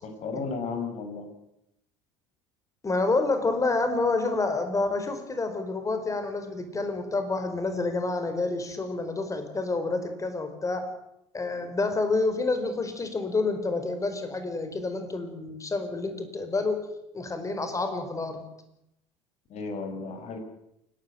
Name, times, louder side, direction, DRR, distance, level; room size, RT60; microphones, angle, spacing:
voice 1, 0.0-1.3 19.5-20.4, left 4 dB, 45° left, 6 dB, 6.3 m, -34 dB
voice 2, 2.8-10.9 11.3-16.9 17.1-18.5, left 3 dB, 20° left, 8 dB, 4.8 m, -28 dB
28.5 x 12.5 x 9.4 m, 0.83 s
figure-of-eight pair, 65°, 16 cm